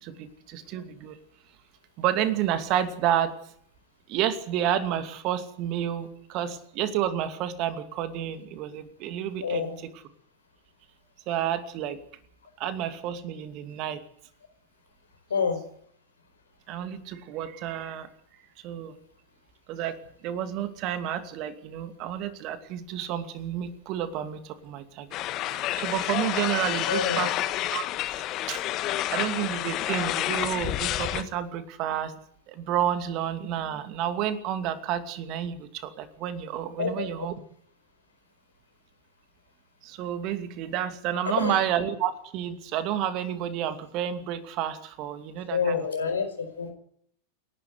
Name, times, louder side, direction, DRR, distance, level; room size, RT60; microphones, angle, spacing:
voice 1, 0.0-1.2 2.0-3.4 4.1-9.6 11.3-12.0 12.6-14.0 16.7-18.1 18.6-18.9 19.7-25.1 25.4-27.4 27.7-27.8 28.5-28.6 29.1-32.2 32.5-37.3 39.8-45.8, right 10 dB, 40° right, 10 dB, 2.6 m, -30 dB
voice 2, 9.4-9.8 15.3-15.6 26.9-27.3 36.8-37.3 41.3-41.5 45.5-46.7, left 5 dB, 70° left, 7 dB, 4.7 m, -28 dB
sound 1, 25.1-31.2, left 14 dB, 35° left, 1.6 m, -29 dB
28.0 x 12.0 x 9.7 m, 0.65 s
figure-of-eight pair, 90°, 0 cm